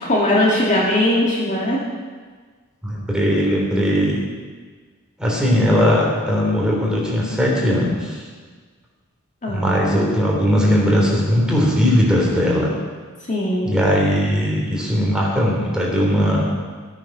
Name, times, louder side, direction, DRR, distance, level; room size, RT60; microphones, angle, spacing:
voice 1, 0.0-1.8 9.4-9.9 13.3-13.8, left 1 dB, 35° left, -4 dB, 2.3 m, -19 dB
voice 2, 2.8-4.2 5.2-8.2 9.5-12.7 13.6-16.5, equal, 5° right, -4 dB, 3.3 m, -19 dB
15.5 x 9.3 x 6.1 m, 1.5 s
head